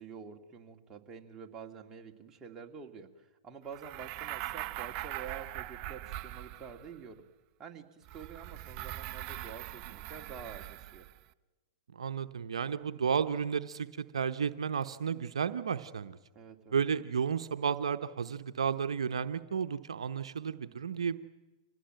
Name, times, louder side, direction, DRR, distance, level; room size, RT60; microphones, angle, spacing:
voice 1, 0.0-7.3 7.6-11.1 16.3-16.8, right 6 dB, 20° right, 2 dB, 2.3 m, -48 dB
sound 1, 3.7-7.0 8.1-11.2, right 15 dB, 40° right, 0.8 m, -41 dB
voice 2, 11.9-16.2 16.7-21.2, right 7 dB, 80° right, 10 dB, 0.9 m, -32 dB
26.0 x 18.0 x 9.1 m, 1.2 s
hypercardioid pair, 125°, 3 cm